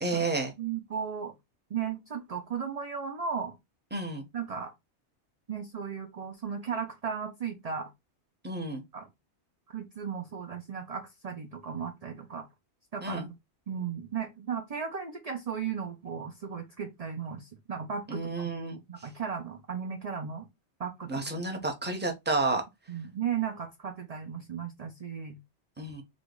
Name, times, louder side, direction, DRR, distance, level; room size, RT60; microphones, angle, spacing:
voice 1, 0.0-0.5 3.9-4.2 8.4-8.8 13.0-13.3 18.1-18.8 21.1-22.6 25.8-26.0, right 2 dB, 10° right, 0.9 m, -31 dB
voice 2, 0.6-1.3 1.7-3.6 4.3-4.7 5.5-7.9 8.9-9.1 9.7-12.5 12.9-13.3 13.7-20.5 20.8-21.2 22.9-25.4, right 7 dB, 40° right, 0.6 m, -35 dB
5.0 x 2.4 x 3.9 m
omnidirectional pair, 1.2 m